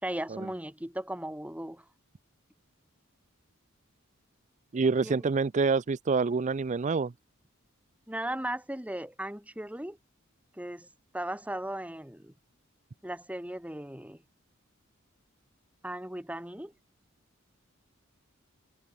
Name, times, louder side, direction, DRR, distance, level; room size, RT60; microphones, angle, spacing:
voice 1, 0.0-1.8 5.0-5.2 8.1-10.0 10.6-10.9 11.1-12.3 13.0-14.2 15.8-16.7, right 1 dB, 5° right, 2.8 m, -37 dB
voice 2, 4.7-7.1, right 4 dB, 35° right, 0.4 m, -27 dB
head